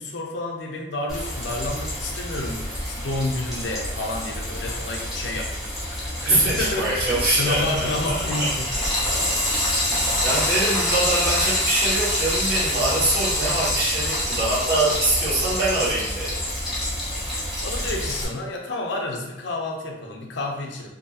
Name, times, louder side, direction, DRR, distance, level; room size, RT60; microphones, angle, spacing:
voice 1, 0.0-9.4 17.6-20.9, left 2 dB, 70° left, 0 dB, 0.5 m, -30 dB
Frying (food), 1.1-18.2, left 1 dB, ahead, 0.8 m, -26 dB
voice 2, 6.2-8.5 9.9-16.4, right 2 dB, 50° right, -7 dB, 1.0 m, -24 dB
2.6 x 2.6 x 2.3 m, 0.92 s
head